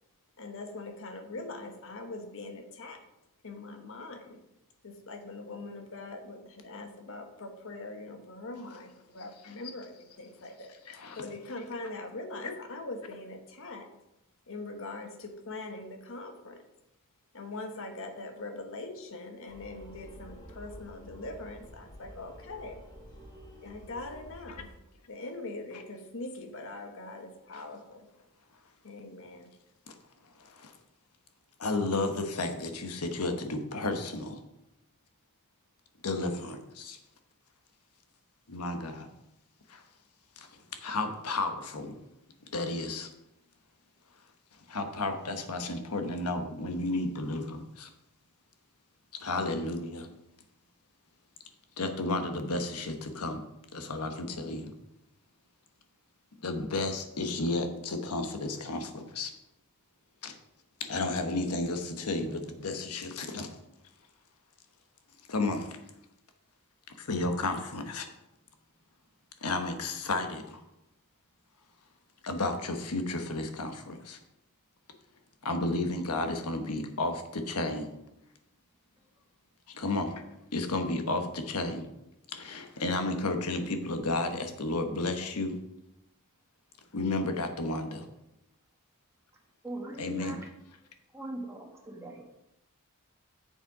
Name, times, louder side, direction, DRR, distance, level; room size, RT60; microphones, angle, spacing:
voice 1, 0.4-3.0 3.4-4.4 4.8-13.9 14.5-16.6 17.3-22.8 23.6-24.7 25.1-28.1 28.8-29.5, left 2 dB, 65° left, 6 dB, 1.2 m, -42 dB
voice 2, 9.2-9.9 10.8-11.9 12.3-12.6 25.7-25.8 27.5-27.7 29.9-30.0 30.4-30.7 31.6-34.4 36.0-37.0 38.5-39.1 39.7-39.8 40.4-40.5 40.8-42.0 42.5-43.1 44.7-47.9 49.2-50.1 51.8-53.5 53.7-54.7 56.4-59.3 60.2-60.3 60.8-63.5 65.3-65.8 67.0-68.1 69.4-70.6 72.2-74.2 75.4-77.9 79.7-80.2 80.5-81.9 82.3-85.6 86.9-88.1 90.0-90.4, left 2 dB, 85° left, 6 dB, 1.1 m, -33 dB
sound 1, 19.5-24.7, equal, 20° left, 1.5 m, -49 dB
voice 3, 89.6-90.5 91.1-92.2, right 1 dB, 10° right, 0 dB, 1.4 m, -40 dB
7.2 x 6.7 x 4.8 m, 0.87 s
head